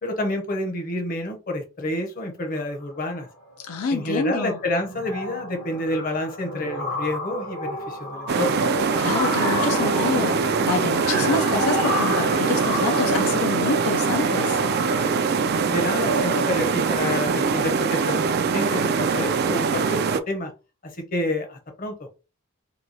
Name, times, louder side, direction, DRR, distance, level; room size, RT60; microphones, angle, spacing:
voice 1, 0.0-3.3 3.9-8.6 15.7-18.3 18.5-20.5 20.8-22.1, left 1 dB, 40° left, 0.8 m, -28 dB
sound 1, 2.8-3.1 3.4-3.7 4.0-18.8, left 1 dB, 60° left, 1.1 m, -31 dB
voice 2, 3.7-4.6 9.0-14.6, left 3 dB, 80° left, 0.5 m, -27 dB
sound 2, 8.3-20.2, right 5 dB, 45° right, 0.3 m, -23 dB
3.0 x 2.2 x 3.9 m
head